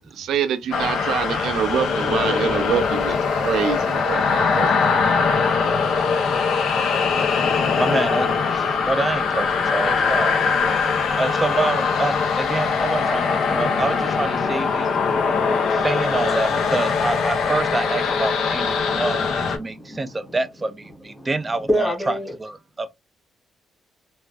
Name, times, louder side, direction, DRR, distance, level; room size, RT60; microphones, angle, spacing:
voice 1, 0.0-5.3, right 8 dB, 75° right, 0.5 m, -26 dB
sound 1, 0.7-19.6, left 5 dB, 70° left, 0.7 m, -21 dB
voice 2, 7.7-10.8 11.2-15.0 15.7-22.9, right 3 dB, 25° right, 0.5 m, -27 dB
voice 3, 13.5-13.9 14.7-15.9 18.8-19.1 19.6-20.4 21.2-21.3 21.7-22.3, equal, 5° left, 1.6 m, -29 dB
3.4 x 2.3 x 2.3 m
cardioid pair, 90°, 0 cm